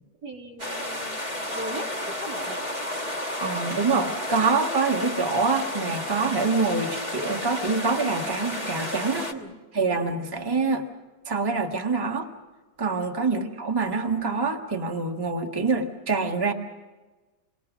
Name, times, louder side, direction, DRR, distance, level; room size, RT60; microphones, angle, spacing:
voice 1, 0.2-2.7 9.3-9.5 9.9-10.1 13.3-13.5, right 1 dB, 65° right, 1 dB, 3.1 m, -39 dB
sound 1, 0.6-9.3, left 1 dB, 30° right, 2.5 m, -32 dB
voice 2, 3.4-9.3 9.7-10.9 11.3-12.3 12.8-16.5, right 4 dB, 15° right, 3 dB, 1.6 m, -25 dB
28.0 x 21.0 x 6.1 m, 1.2 s
omnidirectional pair, 1.8 m